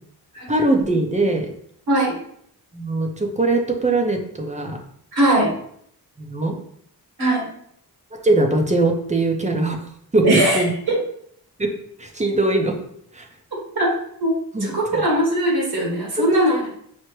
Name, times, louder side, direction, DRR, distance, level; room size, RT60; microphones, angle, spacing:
voice 1, 0.5-1.5 2.7-4.8 6.2-6.6 8.2-9.8 10.1-10.2 10.5-10.7 11.6-11.7 12.0-12.8 13.1-13.3 14.5-15.0 16.2-16.4, right 2 dB, 20° right, 3 dB, 0.6 m, -21 dB
voice 2, 5.1-5.5 7.2-7.5 10.2-11.0 13.7-13.9 14.2-14.3 14.6-16.7, right 1 dB, 70° right, -3 dB, 1.6 m, -20 dB
5.8 x 2.1 x 3.1 m, 0.67 s
wide cardioid pair, 80°, 40 cm